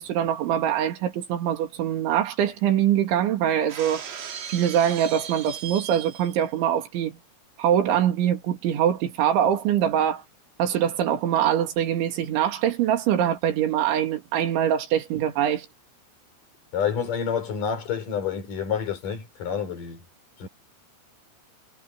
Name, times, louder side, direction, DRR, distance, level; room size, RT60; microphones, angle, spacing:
voice 1, 0.0-4.0 4.5-7.2 7.6-10.2 10.6-15.7, right 10 dB, 90° right, 4.9 m, -23 dB
Shatter, 3.7-6.5, right 8 dB, 75° right, 5.7 m, -37 dB
voice 2, 16.7-20.1 20.4-20.5, left 7 dB, 50° left, 5.2 m, -28 dB
omnidirectional pair, 5.2 m